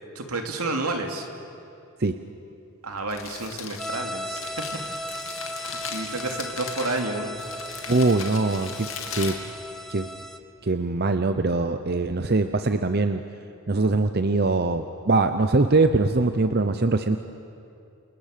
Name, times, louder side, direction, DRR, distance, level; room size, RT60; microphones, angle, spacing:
voice 1, 0.1-1.3 2.8-4.8 5.1-5.2 5.9-7.4, right 2 dB, 80° right, 3 dB, 3.0 m, -30 dB
Crumpling crinkling, 2.9-10.2, left 6 dB, 65° left, 2.7 m, -38 dB
sound 1, 3.8-10.4, equal, ahead, 0.9 m, -36 dB
voice 2, 7.9-9.4 9.9-10.1 10.6-13.2 13.7-17.2, right 3 dB, 45° right, 8 dB, 0.8 m, -22 dB
29.0 x 28.0 x 6.8 m, 2.6 s
head